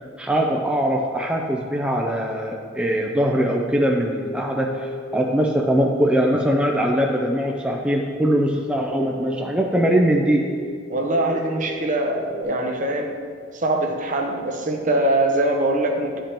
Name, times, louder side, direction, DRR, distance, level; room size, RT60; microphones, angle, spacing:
voice 1, 0.2-10.4, equal, 5° right, 0 dB, 0.4 m, -21 dB
sound 1, 4.0-12.4, equal, 75° left, 0.5 m, -37 dB
voice 2, 10.9-13.2 13.5-16.2, right 1 dB, 45° right, 3 dB, 0.7 m, -22 dB
10.0 x 5.1 x 2.9 m, 2.1 s
head